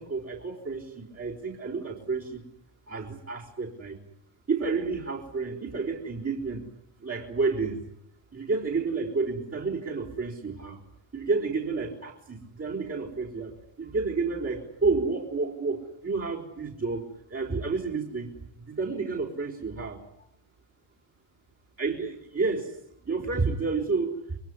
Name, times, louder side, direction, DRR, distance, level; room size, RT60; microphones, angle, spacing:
voice 1, 0.0-2.4 2.9-4.0 4.5-6.6 7.0-7.8 8.3-10.8 11.1-18.3 18.6-20.3 21.8-22.8 23.0-24.4, right 4 dB, 30° right, 0 dB, 4.6 m, -30 dB
27.5 x 22.0 x 9.9 m, 0.76 s
cardioid pair, 105°, 48 cm